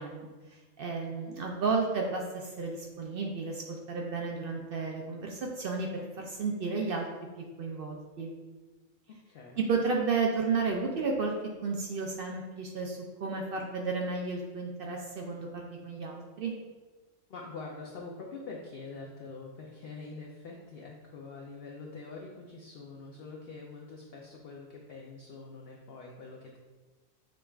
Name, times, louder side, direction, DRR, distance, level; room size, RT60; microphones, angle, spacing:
voice 1, 0.0-7.3 7.6-8.3 9.6-11.3 11.6-16.5, right 4 dB, 65° right, 0 dB, 0.6 m, -32 dB
voice 2, 9.3-9.6 17.3-26.6, left 3 dB, 60° left, -1 dB, 0.7 m, -45 dB
6.1 x 3.3 x 2.3 m, 1.3 s
omnidirectional pair, 1.4 m